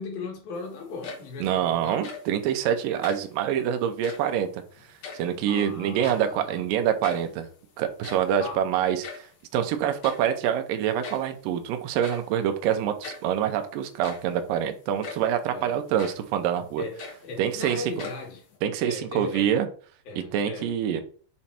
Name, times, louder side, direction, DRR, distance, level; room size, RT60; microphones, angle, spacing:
voice 1, 0.0-2.1 5.5-6.7 8.4-8.6 15.5-15.8 16.8-18.4 18.8-19.5 20.1-20.7, left 4 dB, 85° left, 3.5 m, -38 dB
sound 1, 0.8-1.5 1.9-2.4 2.9-3.4 3.9-4.4 4.8-5.6 5.8-6.5 6.7-6.8 7.0-7.4 7.8-9.4 10.0-10.4 11.0-11.4 12.0-12.4 13.0-13.3 13.8-14.4 15.0-15.4 16.0-16.3 16.7-17.6 18.0-18.6, left 5 dB, 60° left, 1.9 m, -41 dB
voice 2, 1.4-4.6 5.1-7.5 7.8-9.3 9.5-16.8 17.4-17.8 18.6-19.7 20.3-21.0, right 9 dB, 80° right, 2.4 m, -26 dB
7.1 x 3.2 x 4.3 m
omnidirectional pair, 4.0 m